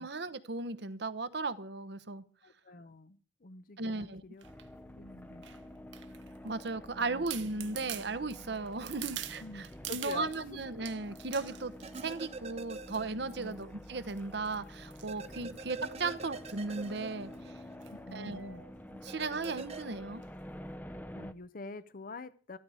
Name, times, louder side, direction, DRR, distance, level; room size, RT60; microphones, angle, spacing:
voice 1, 0.0-2.2 3.8-4.2 6.4-17.3 18.1-18.7 19.0-20.2, right 3 dB, 65° right, 1.0 m, -36 dB
voice 2, 2.4-4.5 4.9-5.4 6.9-7.2 9.4-10.6 13.4-13.6 15.4-15.6 17.9-18.7 20.9-22.6, left 2 dB, 50° left, 0.7 m, -46 dB
sound 1, 4.4-21.3, left 1 dB, 10° left, 0.6 m, -49 dB
sound 2, 4.4-4.7 5.4-6.5 6.9-7.0 7.3-10.5 10.9-12.3 12.7-13.0 13.3-13.6 14.1-15.9 16.4-16.6 16.8-16.9 17.1-17.4 17.8-18.0 18.3-18.4 19.4-19.7 20.2-20.3, right 12 dB, 85° right, 1.2 m, -45 dB
sound 3, 11.8-13.5 13.8-13.9 15.1-17.9 19.1-19.8, right 3 dB, 35° right, 0.8 m, -45 dB
14.0 x 13.0 x 4.9 m
head